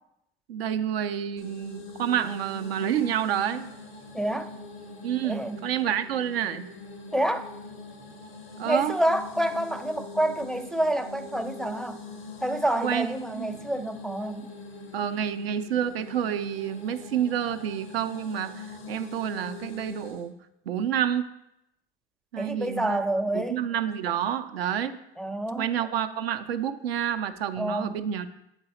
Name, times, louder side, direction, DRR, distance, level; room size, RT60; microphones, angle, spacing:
voice 1, 0.5-3.7 5.0-6.7 8.6-8.9 12.8-13.1 13.3-13.7 14.9-20.4 20.7-21.3 22.3-23.0 23.3-25.0 25.6-28.3, right 9 dB, 90° right, 0.5 m, -29 dB
sound 1, 1.4-20.3, left 3 dB, 90° left, 1.1 m, -43 dB
voice 2, 4.1-4.5 5.2-5.6 7.1-7.5 8.6-12.0 12.4-14.5 22.4-23.6 25.2-25.7 27.6-28.0, right 1 dB, ahead, 0.4 m, -28 dB
7.9 x 4.0 x 4.2 m
hypercardioid pair, 70°, 29 cm